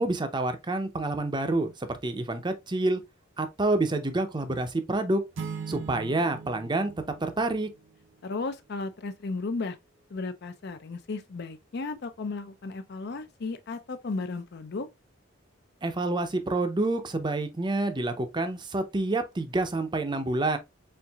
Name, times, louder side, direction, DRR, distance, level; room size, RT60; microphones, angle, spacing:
voice 1, 0.0-3.0 3.4-5.2 5.7-6.9 7.2-7.7 15.8-20.6, right 2 dB, 20° right, 0.6 m, -28 dB
sound 1, 5.3-8.2, right 5 dB, 70° right, 0.8 m, -40 dB
voice 2, 8.2-9.8 10.1-14.9, left 3 dB, 55° left, 0.5 m, -34 dB
4.5 x 3.6 x 2.3 m
head